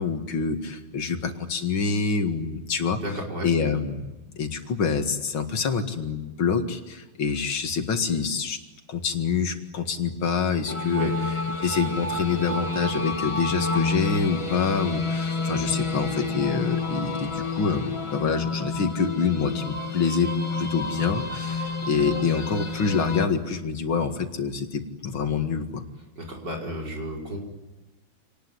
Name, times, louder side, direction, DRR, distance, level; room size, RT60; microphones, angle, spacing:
voice 1, 0.0-3.0 3.4-4.1 4.4-8.6 8.9-11.1 11.6-25.8, left 5 dB, 85° left, 6 dB, 2.8 m, -26 dB
voice 2, 3.0-3.5 10.9-11.1 26.2-27.4, equal, 55° right, 0 dB, 5.8 m, -33 dB
sound 1, 10.7-23.3, left 3 dB, 15° left, 1.4 m, -29 dB
27.0 x 19.5 x 9.8 m, 1.1 s
omnidirectional pair, 2.2 m